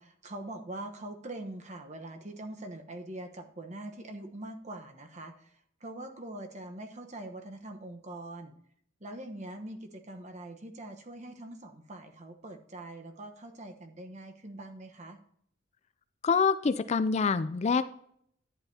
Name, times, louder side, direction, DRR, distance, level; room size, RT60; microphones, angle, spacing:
voice 1, 0.0-5.5 5.8-8.6 9.0-15.2, right 1 dB, 35° right, 5 dB, 1.0 m, -43 dB
voice 2, 16.2-17.8, left 5 dB, 35° left, 13 dB, 0.3 m, -26 dB
11.5 x 9.8 x 2.8 m, 0.67 s
head